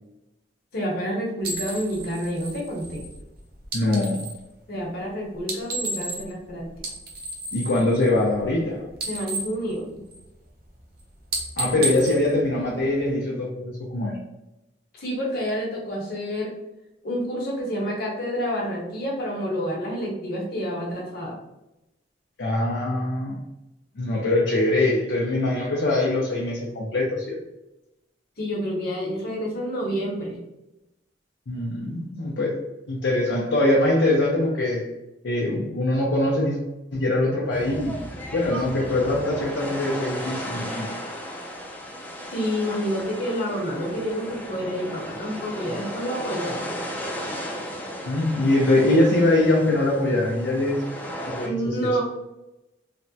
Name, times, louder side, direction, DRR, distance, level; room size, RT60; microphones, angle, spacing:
voice 1, 0.7-3.0 4.7-6.7 9.1-9.9 14.9-16.5 17.0-21.4 28.4-30.4 42.3-46.7 51.4-52.0, equal, 55° left, -3 dB, 1.0 m, -28 dB
sound 1, 1.4-4.4 5.4-6.5 6.7-8.6 8.9-10.4 10.8-11.0 11.3-13.1, right 2 dB, 55° right, 0.6 m, -33 dB
voice 2, 3.7-4.3 7.5-8.9 11.6-14.2 22.4-23.4 24.0-27.4 31.5-32.6 32.9-34.9 35.2-36.6 36.9-38.0 38.3-40.9 48.0-50.8 51.3-51.9, left 1 dB, 70° left, -3 dB, 0.6 m, -23 dB
sound 2, 37.5-51.5, equal, 10° left, 0.4 m, -35 dB
3.3 x 2.1 x 2.7 m, 0.95 s
head